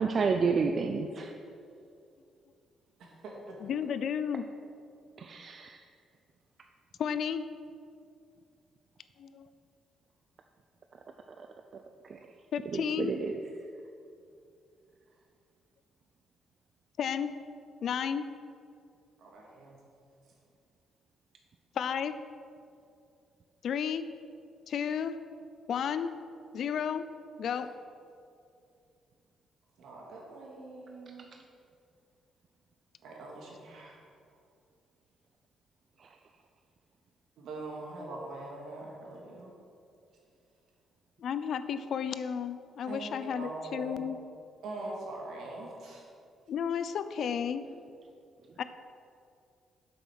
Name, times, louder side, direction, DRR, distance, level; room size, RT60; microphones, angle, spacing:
voice 1, 0.0-1.4 5.2-5.8 11.4-11.5 11.7-12.3 12.7-13.4 36.0-36.2, right 5 dB, 50° right, 5 dB, 0.4 m, -31 dB
voice 2, 3.0-3.7 19.2-19.8 27.6-27.7 29.8-31.3 33.0-34.0 37.4-39.5 42.9-44.0 44.6-46.0, right 2 dB, 75° right, -2 dB, 2.0 m, -43 dB
voice 3, 3.6-4.4 7.0-7.4 9.2-9.5 12.5-13.1 17.0-17.4 17.8-18.3 21.8-22.2 23.6-24.1 24.7-25.2 25.7-26.1 26.5-27.1 27.4-27.7 41.2-44.2 46.5-47.7 48.6-48.7, left 7 dB, 65° left, 12 dB, 0.4 m, -32 dB
7.6 x 5.5 x 6.2 m, 2.5 s
cardioid pair, 90°, 0 cm